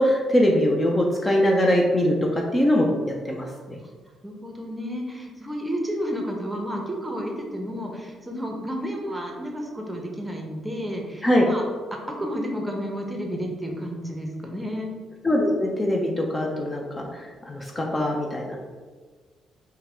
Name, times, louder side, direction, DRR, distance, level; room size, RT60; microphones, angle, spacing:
voice 1, 0.0-2.9 3.2-3.8 11.2-11.4 15.2-18.6, left 1 dB, 20° left, 0 dB, 0.5 m, -22 dB
voice 2, 4.2-11.6 12.1-14.9, equal, 10° right, 1 dB, 0.7 m, -31 dB
3.9 x 2.2 x 4.3 m, 1.5 s
cardioid pair, 90°, 0 cm